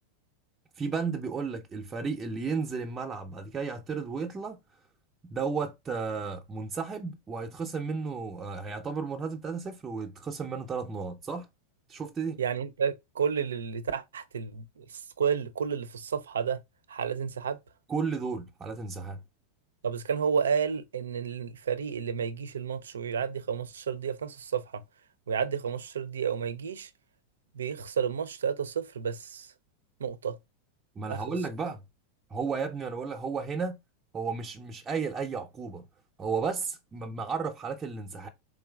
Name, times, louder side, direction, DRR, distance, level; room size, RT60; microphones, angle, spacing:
voice 1, 0.8-4.6 5.3-11.5 11.9-12.4 17.9-19.2 31.0-31.8 32.3-33.8 34.1-35.8 36.2-38.3, right 5 dB, 25° right, 0.6 m, -33 dB
voice 2, 12.4-14.8 15.2-16.6 16.9-17.6 19.8-24.8 25.3-26.9 27.6-29.5 30.0-30.3 31.1-31.3, right 7 dB, 85° right, 0.4 m, -31 dB
3.7 x 3.0 x 2.3 m
hypercardioid pair, 100°, 0 cm